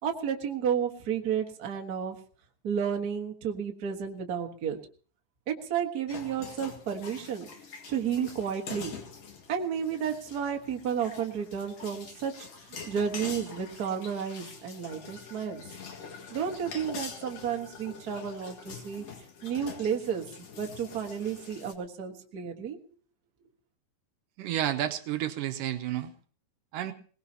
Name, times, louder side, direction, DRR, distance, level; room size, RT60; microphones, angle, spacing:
voice 1, 0.0-2.1 2.6-4.8 5.5-7.5 7.9-9.0 9.5-12.5 12.9-15.6 16.3-19.0 19.4-20.2 20.6-22.8, right 7 dB, 40° right, 2 dB, 1.4 m, -32 dB
sound 1, 6.1-21.7, left 5 dB, 55° left, 2.8 m, -45 dB
voice 2, 24.4-26.1 26.7-26.9, right 12 dB, 75° right, 8 dB, 2.4 m, -31 dB
22.0 x 19.0 x 2.9 m, 0.42 s
omnidirectional pair, 4.0 m